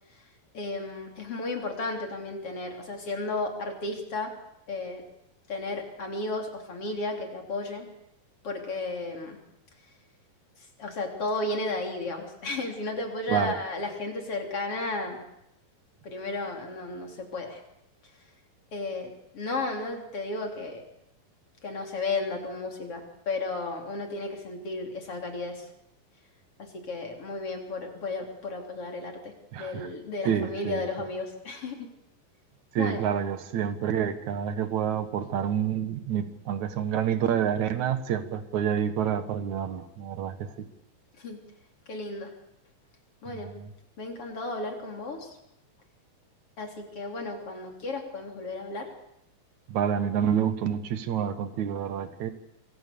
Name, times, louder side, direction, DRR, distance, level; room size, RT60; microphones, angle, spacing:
voice 1, 0.5-4.3 4.7-5.0 5.5-7.9 8.4-9.4 10.8-15.2 16.0-17.6 18.7-20.8 21.6-25.7 26.6-31.9 32.8-33.0 41.2-41.4 41.9-42.3 43.2-43.5 44.0-45.4 46.6-48.9, left 2 dB, 40° left, 3 dB, 4.0 m, -33 dB
voice 2, 29.5-29.9 30.2-30.8 32.7-40.7 43.5-43.7 49.7-52.3, right 8 dB, 60° right, 10 dB, 2.6 m, -28 dB
26.5 x 24.0 x 6.9 m, 0.82 s
omnidirectional pair, 4.2 m